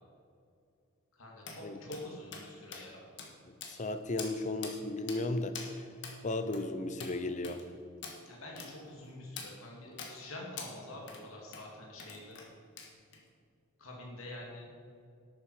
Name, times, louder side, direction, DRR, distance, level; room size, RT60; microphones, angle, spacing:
voice 1, 1.1-3.1 8.3-12.4 13.8-14.7, left 1 dB, 70° left, -2 dB, 2.4 m, -46 dB
sound 1, 1.5-1.6 1.9-2.0 2.3-2.5 2.7-2.8 3.2-3.3 3.6-3.9 4.2-4.3 4.6-4.8 5.1-5.2 5.5-5.7 6.0-6.2 6.5-6.6 7.0-7.1 7.4-7.6 8.0-8.2 8.6-8.7 9.4-9.5 10.0-10.1 10.6-10.7 11.1-11.2 11.5-11.6 12.0-12.5 12.8-13.2, left 5 dB, 55° left, 1.7 m, -44 dB
voice 2, 3.7-5.9 6.2-7.6, left 2 dB, 35° left, 10 dB, 0.6 m, -35 dB
11.5 x 8.9 x 4.8 m, 2.3 s
head